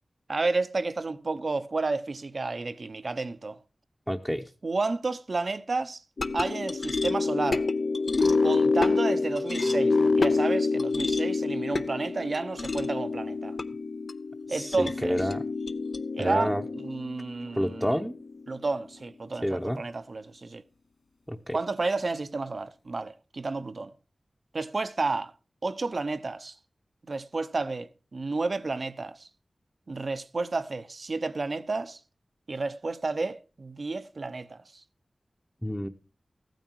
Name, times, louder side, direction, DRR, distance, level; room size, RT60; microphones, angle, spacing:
voice 1, 0.3-3.6 4.6-6.0 6.3-7.7 8.4-13.6 14.5-15.3 16.2-18.0 18.5-20.6 21.5-23.9 24.5-25.3 25.6-26.6 27.0-29.3 29.9-32.0 32.5-34.8, right 3 dB, 60° right, 0.8 m, -31 dB
voice 2, 4.1-4.5 14.5-15.4 16.2-16.6 17.5-18.1 19.4-19.8 21.3-21.6 35.6-35.9, equal, ahead, 0.8 m, -29 dB
sound 1, 6.2-18.6, left 3 dB, 65° left, 0.7 m, -27 dB
15.0 x 9.2 x 4.6 m
wide cardioid pair, 65°, 0 cm